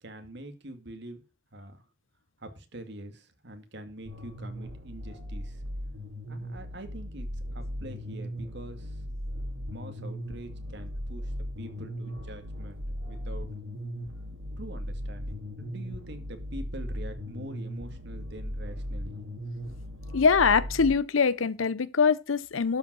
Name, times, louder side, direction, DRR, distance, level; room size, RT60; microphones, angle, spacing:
voice 1, 0.0-1.2 1.5-1.8 2.4-5.6 6.3-7.3 7.5-9.0 9.7-13.6 14.6-19.2, right 1 dB, 60° right, 2.0 m, -44 dB
sound 1, 4.1-20.9, equal, 80° right, 2.5 m, -37 dB
voice 2, 20.1-22.8, left 5 dB, 90° left, 0.7 m, -23 dB
12.0 x 5.2 x 6.2 m
head